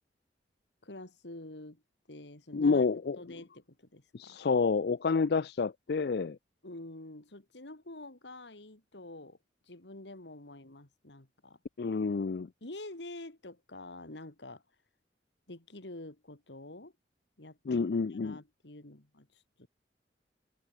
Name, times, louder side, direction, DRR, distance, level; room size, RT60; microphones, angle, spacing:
voice 1, 0.8-1.8 2.1-2.8 3.2-4.4 6.6-9.4 9.6-11.6 12.6-14.6 15.5-16.9 17.4-19.7, left 2 dB, 90° left, 2.8 m, -47 dB
voice 2, 2.5-3.2 4.1-6.4 11.8-12.5 17.7-18.4, left 4 dB, 65° left, 0.4 m, -29 dB
head